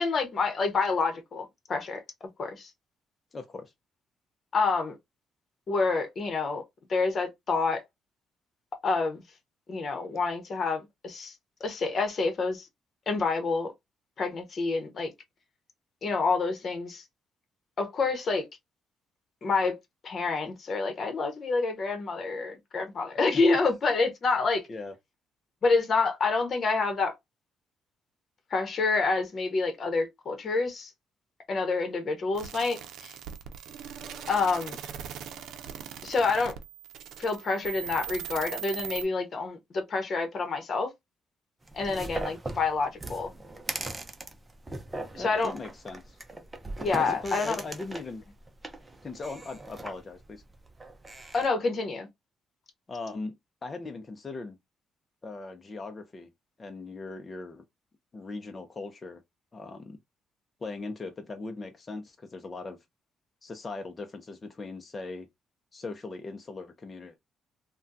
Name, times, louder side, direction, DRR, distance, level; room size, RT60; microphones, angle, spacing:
voice 1, 0.0-2.0 2.4-2.7 4.5-5.0 5.7-6.6 6.9-7.8 8.8-9.2 9.7-11.3 11.6-12.6 13.1-13.7 14.2-15.1 16.0-17.0 17.8-18.5 19.4-19.8 20.0-24.6 25.6-27.1 28.5-30.9 31.5-33.1 34.3-34.8 36.0-36.5 37.2-40.9 41.7-43.3 45.2-45.5 46.8-47.6 51.3-52.1, left 4 dB, 50° left, 1.0 m, -28 dB
voice 2, 3.3-3.7 23.1-23.4 24.7-24.9 45.2-46.2 47.0-48.3 49.0-50.4 52.9-53.4 53.6-54.6 55.2-56.3 56.6-57.6 58.1-59.2 59.5-60.0 60.6-62.8 63.4-65.3 65.7-67.2, left 3 dB, 30° left, 0.6 m, -39 dB
sound 1, 32.3-39.0, right 9 dB, 80° right, 0.6 m, -40 dB
sound 2, 41.7-51.5, right 2 dB, 20° right, 0.7 m, -40 dB
3.5 x 2.2 x 2.6 m
cardioid pair, 90°, 0 cm